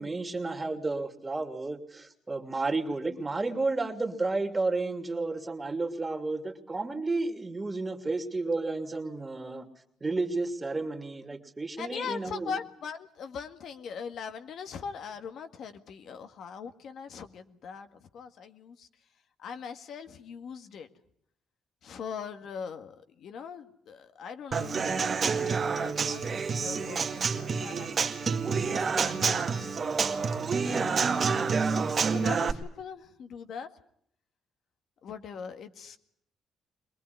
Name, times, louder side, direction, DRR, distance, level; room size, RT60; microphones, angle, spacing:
voice 1, 0.0-9.7 10.0-12.5, right 3 dB, 20° right, 5 dB, 2.9 m, -32 dB
voice 2, 11.8-18.9 19.4-20.9 21.8-29.7 30.6-33.7 35.0-36.0, left 6 dB, 70° left, 7 dB, 1.9 m, -41 dB
Human voice / Acoustic guitar / Drum, 24.5-32.5, right 5 dB, 45° right, 2.0 m, -28 dB
23.0 x 20.5 x 9.5 m, 0.69 s
cardioid pair, 90°, 0 cm